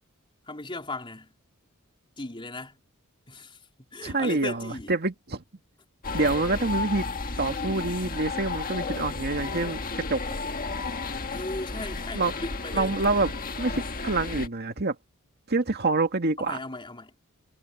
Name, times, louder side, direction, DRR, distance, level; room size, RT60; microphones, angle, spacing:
voice 1, 0.5-1.3 2.2-2.8 3.3-3.6 3.9-4.9 11.3-13.0 16.4-17.1, left 2 dB, 25° left, 4.1 m, -37 dB
voice 2, 4.0-5.4 6.1-7.0 7.4-10.2 12.2-12.3 12.7-13.3 13.6-15.0 15.5-16.6, right 3 dB, 45° right, 2.0 m, -26 dB
sound 1, 6.0-14.5, left 3 dB, 40° left, 1.6 m, -33 dB
head